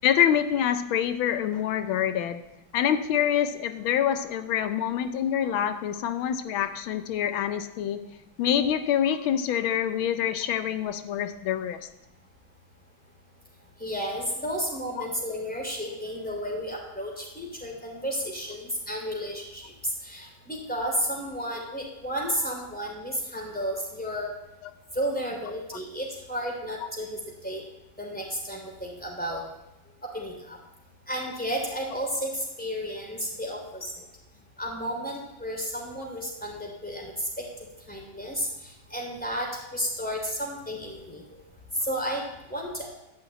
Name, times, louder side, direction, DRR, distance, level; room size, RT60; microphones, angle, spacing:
voice 1, 0.0-2.4 2.7-8.0 8.4-11.8 24.6-24.7, left 9 dB, 90° left, 10 dB, 1.6 m, -26 dB
voice 2, 13.8-24.3 24.9-27.6 28.0-29.4 30.0-30.6 31.1-34.0 34.6-37.4 37.9-41.4 41.7-42.2 42.5-42.9, equal, 5° left, -1 dB, 3.1 m, -32 dB
12.5 x 5.9 x 9.0 m, 0.93 s
omnidirectional pair, 2.2 m